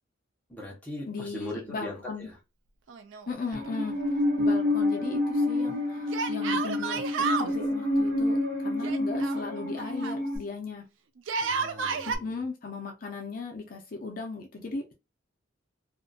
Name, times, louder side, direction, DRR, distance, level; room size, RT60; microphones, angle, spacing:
voice 1, 0.5-2.4 11.4-12.3, left 1 dB, 10° left, 0.8 m, -40 dB
voice 2, 1.1-2.3 3.3-4.0 4.4-10.8 12.1-14.9, left 4 dB, 45° left, 0.5 m, -37 dB
Yell, 2.9-3.8 4.0-4.1 6.1-7.5 8.8-10.2 11.2-12.2, right 5 dB, 75° right, 0.4 m, -31 dB
Musical instrument, 3.5-10.4, left 1 dB, 60° right, 1.3 m, -28 dB
2.6 x 2.4 x 2.2 m
head